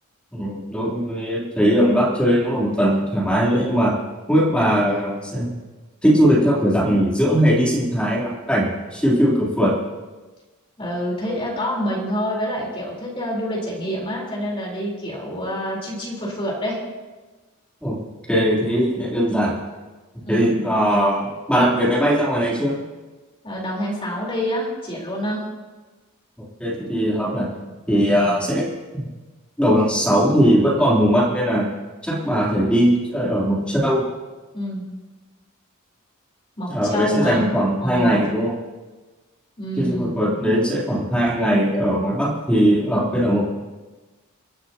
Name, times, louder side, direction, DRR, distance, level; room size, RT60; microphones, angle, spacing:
voice 1, 0.3-4.0 4.3-5.5 6.0-9.7 17.8-18.0 18.3-19.6 20.3-22.8 26.4-27.5 27.9-28.7 28.9-29.1 29.6-31.7 32.0-34.1 36.7-38.5 39.8-43.5, equal, 5° left, -6 dB, 3.5 m, -19 dB
voice 2, 10.8-16.8 20.2-20.6 23.4-25.4 28.0-28.4 34.5-35.0 36.6-37.6 37.8-38.3 39.6-40.1, equal, 25° left, -4 dB, 4.3 m, -27 dB
28.5 x 10.0 x 3.0 m, 1.2 s
head